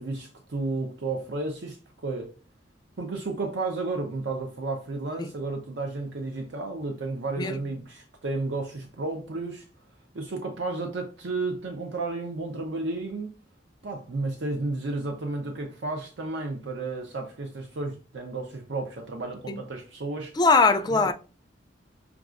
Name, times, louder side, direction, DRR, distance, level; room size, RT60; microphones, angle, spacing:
voice 1, 0.0-1.8 2.0-2.3 3.0-9.7 10.1-13.3 13.8-20.4 20.9-21.1, right 3 dB, 75° right, 0.6 m, -32 dB
voice 2, 20.4-21.1, left 3 dB, 25° left, 0.3 m, -21 dB
6.0 x 2.3 x 2.4 m
head